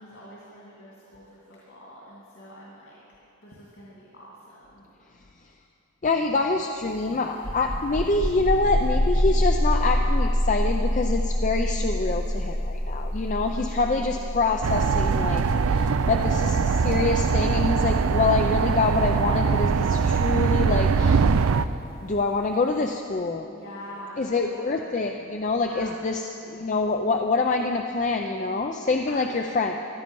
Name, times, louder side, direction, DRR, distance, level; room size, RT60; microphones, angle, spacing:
voice 1, 0.0-3.0 3.4-4.8 13.5-14.2 14.6-14.8 15.8-16.1 23.5-24.8 25.5-26.0 29.1-29.4, equal, 60° left, -6 dB, 2.4 m, -45 dB
voice 2, 6.0-21.2 22.0-23.5 24.2-29.8, left 3 dB, 35° left, 4 dB, 0.4 m, -26 dB
sound 1, 7.4-20.7, left 1 dB, 80° left, 2.4 m, -26 dB
sound 2, 14.6-21.7, right 5 dB, 80° right, 0.4 m, -22 dB
15.5 x 11.5 x 5.4 m, 2.9 s
head